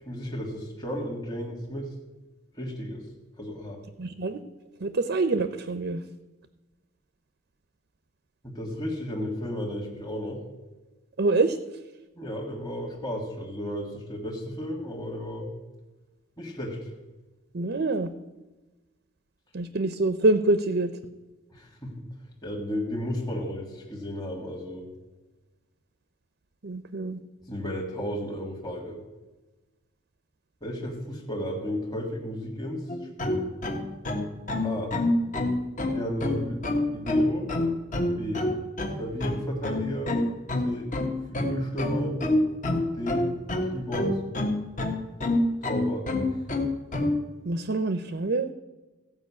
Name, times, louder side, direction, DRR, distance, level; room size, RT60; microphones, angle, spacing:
voice 1, 0.0-1.9 2.5-3.1 3.4-3.8 8.4-10.4 12.1-15.5 16.4-16.8 21.5-21.9 22.4-24.9 27.5-29.0 30.6-32.9 33.2-33.4 34.6-34.9 35.9-36.6 36.9-37.5 38.2-38.5 39.0-40.1 40.6-40.9 41.3-42.2 42.9-43.3 43.7-44.1 45.7-46.3, equal, 20° left, -1 dB, 1.7 m, -33 dB
voice 2, 4.0-4.4 4.8-6.0 11.2-11.6 17.5-18.1 19.5-20.9 26.6-27.2 47.4-48.5, right 2 dB, 55° right, 11 dB, 0.6 m, -25 dB
sound 1, 32.9-47.2, left 2 dB, 40° left, 1.4 m, -26 dB
15.5 x 5.4 x 8.3 m, 1.2 s
head